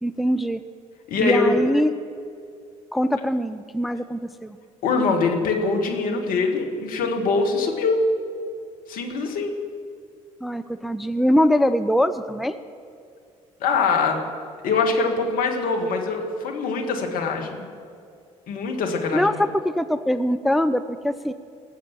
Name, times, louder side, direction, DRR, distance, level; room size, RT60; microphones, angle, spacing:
voice 1, 0.0-0.6 1.2-1.9 2.9-4.6 10.4-12.6 19.1-21.3, equal, ahead, 11 dB, 0.5 m, -22 dB
voice 2, 1.1-1.6 4.8-8.0 8.9-9.5 13.6-14.3 14.6-17.7 18.5-19.3, left 4 dB, 60° left, 2 dB, 1.9 m, -23 dB
18.5 x 7.4 x 7.4 m, 2.3 s
figure-of-eight pair, 50°, 16 cm